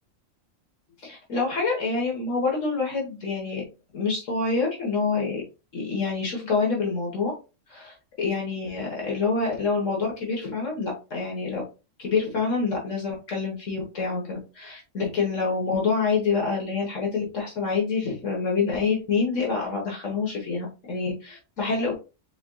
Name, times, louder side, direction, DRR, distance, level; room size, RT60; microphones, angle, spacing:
voice 1, 1.0-3.6 3.9-5.4 5.7-7.3 7.7-11.6 12.0-21.9, left 4 dB, 70° left, -2 dB, 1.6 m, -27 dB
5.0 x 4.2 x 2.3 m, 0.30 s
omnidirectional pair, 1.4 m